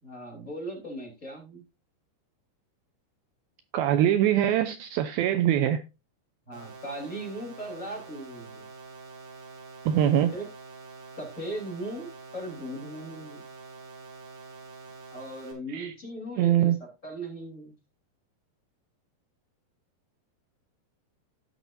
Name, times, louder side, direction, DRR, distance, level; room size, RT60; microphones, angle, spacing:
voice 1, 0.0-1.6 6.5-8.7 10.3-10.5 11.2-13.5 15.1-17.7, right 1 dB, 20° left, 3.7 m, -38 dB
voice 2, 3.7-5.8 9.9-10.3 15.7-15.9 16.4-16.8, right 11 dB, 90° right, 2.1 m, -23 dB
sound 1, 6.5-15.5, right 4 dB, 55° right, 4.8 m, -46 dB
17.5 x 6.3 x 2.6 m
omnidirectional pair, 5.2 m